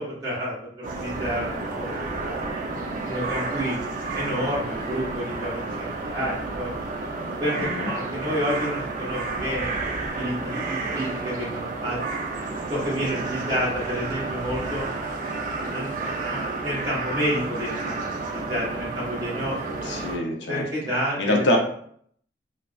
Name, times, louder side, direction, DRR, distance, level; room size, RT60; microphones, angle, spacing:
voice 1, 0.0-2.4 3.0-3.8 4.1-6.7 7.4-9.7 10.2-12.0 12.7-14.8 15.7-17.9 18.3-19.6 20.5-21.4, equal, 20° right, -8 dB, 1.3 m, -29 dB
sound 1, 0.8-20.2, right 3 dB, 45° right, 0.5 m, -31 dB
voice 2, 7.6-7.9 19.8-20.6 21.2-21.6, left 1 dB, 90° left, 2 dB, 0.6 m, -24 dB
3.3 x 2.0 x 2.3 m, 0.63 s
head